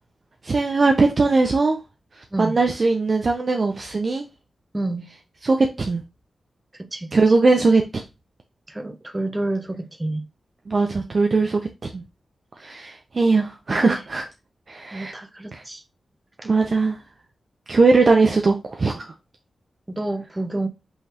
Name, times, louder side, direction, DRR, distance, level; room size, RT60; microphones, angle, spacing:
voice 1, 0.4-1.8 2.4-4.3 5.4-6.0 7.1-8.0 10.7-12.0 12.6-14.2 14.7-15.1 15.5-15.6 16.4-17.0 17.7-19.1, right 3 dB, 50° right, 0.7 m, -20 dB
voice 2, 4.7-5.1 6.9-7.4 8.7-10.3 13.8-14.0 14.9-15.8 16.4-16.5 19.9-20.7, right 2 dB, 20° right, 0.9 m, -29 dB
5.6 x 3.1 x 2.8 m
cardioid pair, 65°, 0 cm